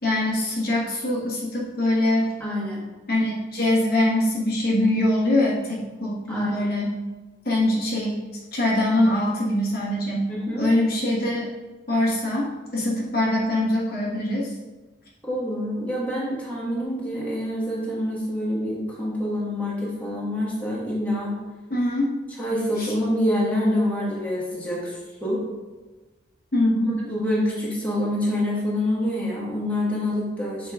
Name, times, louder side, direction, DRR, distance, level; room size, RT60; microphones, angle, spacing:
voice 1, 0.0-2.3 3.1-6.9 7.4-8.2 8.5-11.5 11.9-14.5 21.7-22.1 22.8-22.9 26.5-27.0, left 1 dB, 55° left, -4 dB, 1.2 m, -23 dB
voice 2, 2.4-2.8 6.3-6.7 10.3-10.7 15.2-21.4 22.4-25.4 27.1-30.7, left 1 dB, 10° left, -6 dB, 1.6 m, -26 dB
6.4 x 4.8 x 3.6 m, 1.2 s
head